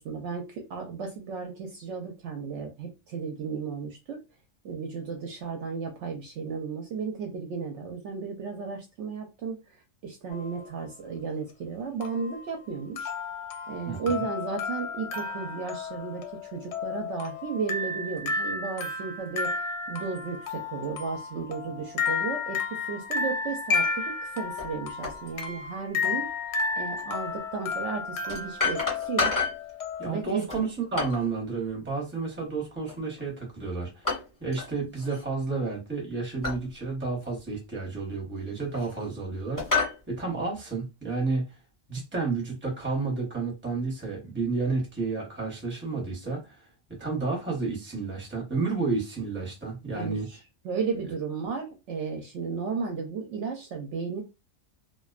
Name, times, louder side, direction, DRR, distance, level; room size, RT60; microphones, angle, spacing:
voice 1, 0.0-4.2 4.6-9.6 10.0-13.1 13.7-26.3 26.8-29.3 30.0-30.5 49.9-50.4 50.6-54.2, right 5 dB, 70° right, 0.8 m, -34 dB
sound 1, 10.3-10.7 12.0-30.2, left 4 dB, 65° left, 0.7 m, -33 dB
sound 2, 24.6-24.7 25.0-25.2 27.0-27.1 28.3-29.7 30.5-31.3 32.9-33.3 34.0-34.7 35.0-35.2 36.4-36.6 37.2-37.3 38.3-39.1 39.6-40.0, left 4 dB, 20° left, 0.5 m, -30 dB
voice 2, 30.0-34.0 34.4-39.6 40.1-41.4 41.9-46.6 47.0-50.3, right 4 dB, 10° right, 0.7 m, -31 dB
2.5 x 2.2 x 2.3 m
omnidirectional pair, 1.4 m